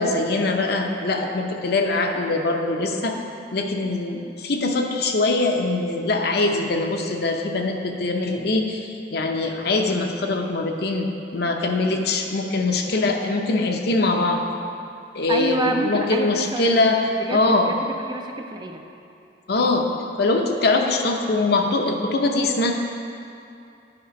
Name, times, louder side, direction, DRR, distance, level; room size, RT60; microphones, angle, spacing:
voice 1, 0.0-3.2 3.5-14.4 15.1-17.7 19.5-19.9 20.2-22.7, left 2 dB, 60° left, 3 dB, 0.7 m, -22 dB
voice 2, 15.3-16.7 17.2-18.8, right 2 dB, 25° right, 4 dB, 0.4 m, -27 dB
8.8 x 5.0 x 5.2 m, 2.6 s
head